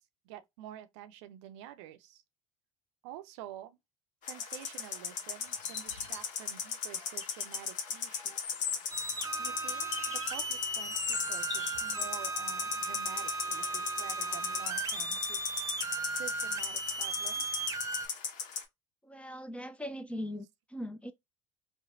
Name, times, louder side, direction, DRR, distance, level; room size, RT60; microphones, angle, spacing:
voice 1, 0.2-2.2 3.0-3.8 4.3-8.4 9.4-15.5 16.2-17.7, right 12 dB, 70° right, 0.5 m, -49 dB
sound 1, 4.2-18.6, left 6 dB, 55° left, 0.9 m, -38 dB
sound 2, 5.5-6.2 7.2-7.6 8.4-10.5 10.9-12.1, left 7 dB, 90° left, 0.5 m, -40 dB
sound 3, 8.9-18.1, right 3 dB, 20° right, 0.8 m, -37 dB
voice 2, 19.0-21.1, equal, 10° left, 0.4 m, -40 dB
3.1 x 2.1 x 2.5 m
hypercardioid pair, 75°, 16 cm